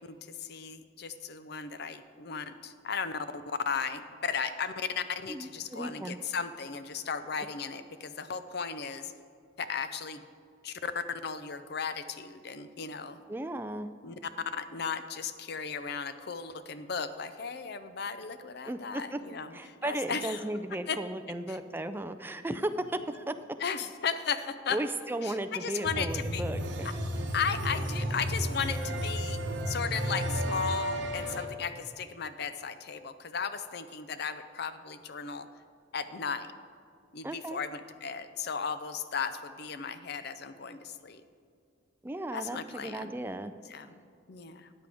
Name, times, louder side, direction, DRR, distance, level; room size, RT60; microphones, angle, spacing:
voice 1, 0.1-3.3 3.7-9.1 9.7-10.2 10.6-13.2 14.0-14.1 14.5-20.4 20.9-21.0 21.5-21.6 23.6-24.8 25.2-26.4 27.3-29.4 29.7-35.5 35.9-36.5 37.1-41.2 42.3-43.1 43.7-44.0 44.3-44.7, left 6 dB, 55° left, 11 dB, 0.5 m, -35 dB
voice 2, 5.3-6.2 13.3-13.9 18.7-19.2 19.5-23.3 24.7-26.9 37.2-37.6 42.0-43.5, right 1 dB, 10° right, 10 dB, 0.3 m, -35 dB
sound 1, 25.8-31.4, equal, 65° right, 1.1 m, -33 dB
13.5 x 9.3 x 3.5 m, 2.3 s
head